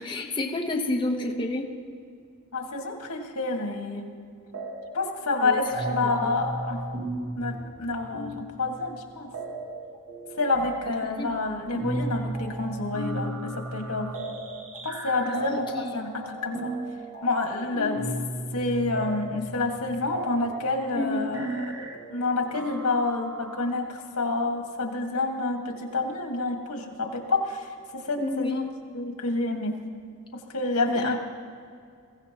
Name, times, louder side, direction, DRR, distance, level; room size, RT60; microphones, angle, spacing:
voice 1, 0.0-1.7 5.4-5.6 6.0-6.4 11.0-11.3 15.2-16.0 20.9-21.3 28.2-28.7 31.0-31.2, left 2 dB, 20° left, 0 dB, 1.0 m, -30 dB
voice 2, 2.5-4.1 4.9-6.8 7.4-9.3 10.4-14.1 14.8-16.7 17.2-18.1 18.5-28.6 28.9-29.8 30.5-31.2, left 3 dB, 85° left, 2 dB, 1.8 m, -28 dB
sound 1, 4.5-5.2 5.4-23.7, right 1 dB, 65° right, 1.3 m, -35 dB
22.0 x 16.0 x 3.0 m, 2.3 s
head